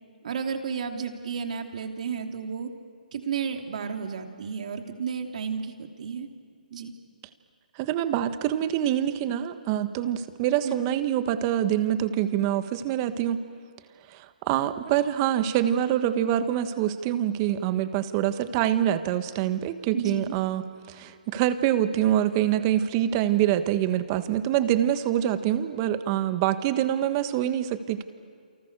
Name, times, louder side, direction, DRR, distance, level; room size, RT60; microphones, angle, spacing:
voice 1, 0.2-2.7 3.1-6.3 6.7-6.9 10.6-10.7 19.9-20.3, right 6 dB, 55° right, 4 dB, 3.1 m, -32 dB
voice 2, 7.8-13.4 14.1-28.0, right 11 dB, 25° right, 11 dB, 1.4 m, -25 dB
30.0 x 28.5 x 6.8 m, 2.2 s
hypercardioid pair, 155°, 5 cm